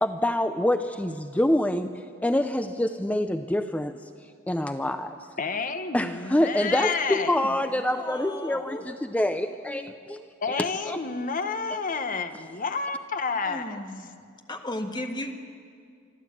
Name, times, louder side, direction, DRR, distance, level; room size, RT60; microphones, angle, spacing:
voice 1, 0.0-3.9 4.5-5.1 5.9-10.2 10.9-11.0, left 1 dB, 5° left, 8 dB, 0.6 m, -26 dB
voice 2, 5.4-7.4 10.4-13.8, left 4 dB, 45° left, 8 dB, 1.0 m, -30 dB
voice 3, 7.9-8.8 13.4-14.1 14.5-15.3, left 1 dB, 20° left, 4 dB, 1.6 m, -35 dB
25.5 x 13.0 x 8.6 m, 2.2 s
head